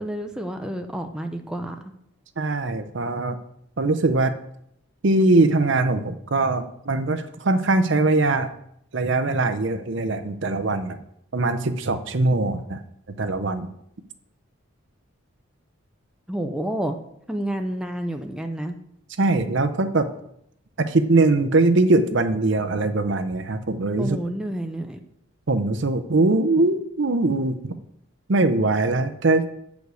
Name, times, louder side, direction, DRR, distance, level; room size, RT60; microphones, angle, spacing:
voice 1, 0.0-1.8 16.3-17.0 17.3-18.8 24.0-25.0, right 1 dB, 5° right, 4 dB, 0.5 m, -29 dB
voice 2, 2.4-3.4 3.8-4.4 5.0-8.5 8.9-11.0 11.3-12.8 13.2-13.7 19.2-20.1 20.8-24.2 25.5-27.7 28.3-29.5, right 2 dB, 55° right, 10 dB, 0.6 m, -21 dB
8.1 x 5.2 x 6.3 m, 0.74 s
head